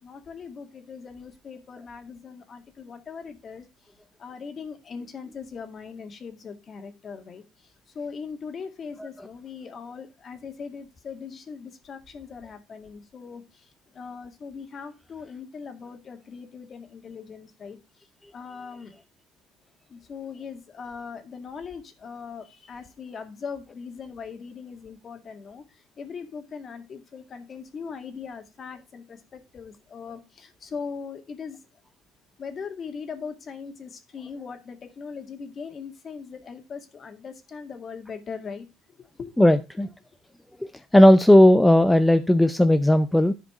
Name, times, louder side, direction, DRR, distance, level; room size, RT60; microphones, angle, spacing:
voice 1, 0.0-3.9 4.2-18.9 19.9-31.6 32.4-39.3, left 5 dB, 35° left, 2.0 m, -40 dB
voice 2, 39.4-39.9 40.6-43.3, left 1 dB, 5° left, 0.6 m, -16 dB
11.0 x 5.0 x 4.9 m
cardioid pair, 115°, 0 cm